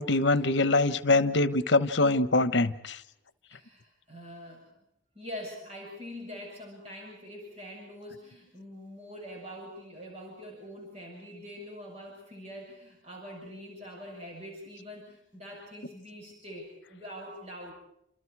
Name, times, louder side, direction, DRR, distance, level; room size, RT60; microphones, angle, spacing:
voice 1, 0.0-3.0, left 2 dB, 60° left, 1.1 m, -24 dB
voice 2, 3.5-4.8 5.2-17.7, equal, 35° right, 7.4 m, -44 dB
29.0 x 27.0 x 4.8 m
head